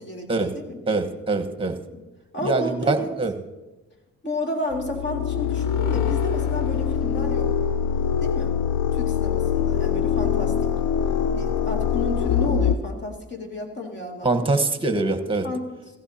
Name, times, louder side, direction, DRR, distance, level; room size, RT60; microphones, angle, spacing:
voice 1, 0.0-0.8 1.9-2.0 2.3-3.2 4.2-7.6 8.2-8.6 8.9-10.7 11.3-14.5 15.4-15.8, left 1 dB, 35° left, 1 dB, 2.3 m, -32 dB
voice 2, 0.9-1.8 2.4-3.3 14.2-15.5, right 3 dB, 15° right, 8 dB, 1.3 m, -23 dB
sound 1, 4.7-12.8, left 8 dB, 75° left, 0.7 m, -23 dB
17.5 x 15.0 x 2.9 m, 1.1 s
cardioid pair, 90°, 30 cm